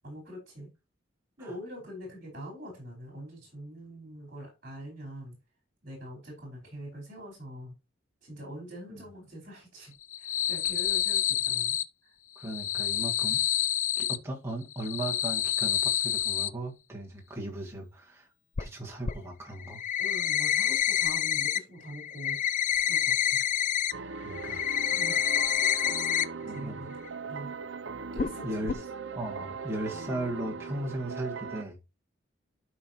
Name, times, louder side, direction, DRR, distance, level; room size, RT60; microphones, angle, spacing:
voice 1, 0.0-0.7 1.4-5.4 5.8-7.7 8.2-11.8 20.0-22.4 22.8-23.4 24.9-25.2 25.7-27.0 27.3-27.5 28.1-28.8, equal, 40° right, 4.8 m, -44 dB
sound 1, 10.0-11.8 12.4-14.2 14.7-16.5 18.6-18.7 19.1-19.2 19.6-21.6 21.9-23.9 24.3-26.2 26.6-26.7 27.1-27.2 28.2-28.4 28.7-28.8, left 10 dB, 40° left, 0.4 m, -28 dB
voice 2, 12.4-13.5 14.0-18.3 18.6-19.8 24.2-24.6 26.4-26.8 28.4-28.8 29.1-31.8, right 1 dB, 15° right, 2.1 m, -37 dB
sound 2, 23.9-31.6, right 4 dB, 65° right, 0.7 m, -39 dB
12.0 x 5.4 x 3.0 m
head